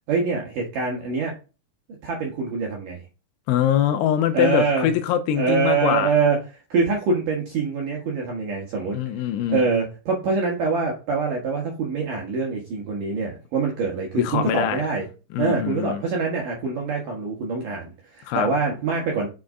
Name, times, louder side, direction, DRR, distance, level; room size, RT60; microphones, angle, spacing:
voice 1, 0.1-1.3 2.0-3.0 4.3-4.9 5.4-6.4 6.7-9.0 9.5-15.1 15.4-19.3, right 4 dB, 65° right, 2.1 m, -24 dB
voice 2, 3.5-6.1 8.9-9.6 14.2-14.8 15.3-16.0 18.3-18.5, left 10 dB, 80° left, 3.0 m, -23 dB
7.8 x 5.4 x 3.7 m
omnidirectional pair, 5.7 m